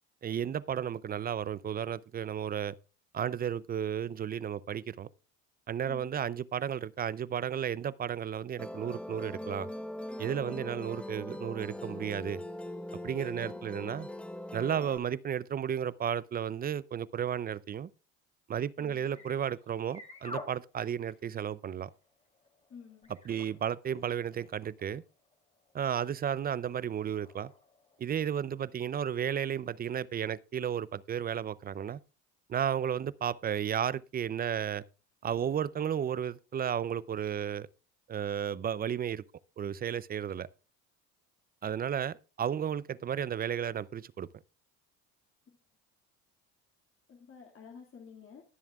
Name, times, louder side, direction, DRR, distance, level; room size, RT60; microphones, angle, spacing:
voice 1, 0.2-2.7 3.1-5.1 5.7-9.7 10.2-12.4 13.0-14.1 14.5-17.9 18.5-21.9 23.3-25.0 25.7-27.5 28.0-32.0 32.5-34.8 35.2-37.7 38.1-39.2 39.6-40.5 41.6-44.3, right 9 dB, 25° right, 0.4 m, -33 dB
Musical instrument, 8.6-15.0, left 1 dB, 5° left, 0.8 m, -41 dB
voice 2, 10.5-10.8 13.4-13.6 18.8-19.3 22.7-23.1 47.1-48.4, left 6 dB, 35° left, 2.2 m, -51 dB
sound 1, 19.0-28.2, left 2 dB, 20° left, 2.8 m, -52 dB
21.0 x 7.1 x 2.3 m
supercardioid pair, 95°, 35 cm